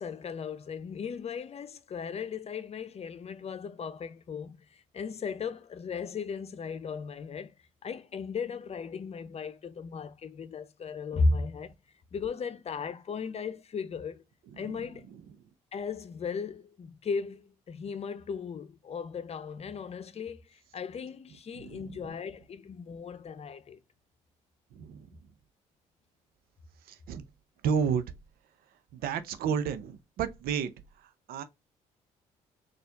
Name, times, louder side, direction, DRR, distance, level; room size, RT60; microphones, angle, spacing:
voice 1, 0.0-7.5 7.8-11.7 12.1-14.2 14.6-15.1 15.7-23.8, left 4 dB, 40° left, 0.7 m, -36 dB
voice 2, 24.7-25.1 26.9-27.2 27.6-28.0 28.9-30.7 31.3-31.4, right 7 dB, 70° right, 0.7 m, -31 dB
4.2 x 2.5 x 3.4 m
supercardioid pair, 65°, 16 cm